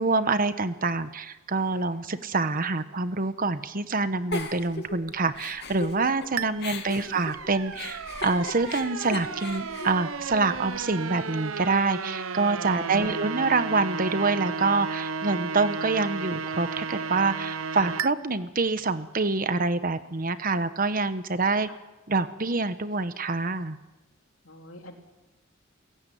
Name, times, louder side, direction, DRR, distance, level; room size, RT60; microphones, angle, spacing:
voice 1, 0.0-21.7 22.1-23.8, right 3 dB, 45° right, 12 dB, 1.2 m, -26 dB
Giggle, 4.3-6.3 6.6-10.8, left 3 dB, 55° left, 2.6 m, -37 dB
sound 1, 6.4-18.1, right 5 dB, 80° right, 0.9 m, -34 dB
voice 2, 12.7-13.3 24.5-24.9, left 1 dB, 70° left, 3 dB, 3.7 m, -43 dB
29.0 x 17.0 x 9.3 m, 1.1 s
head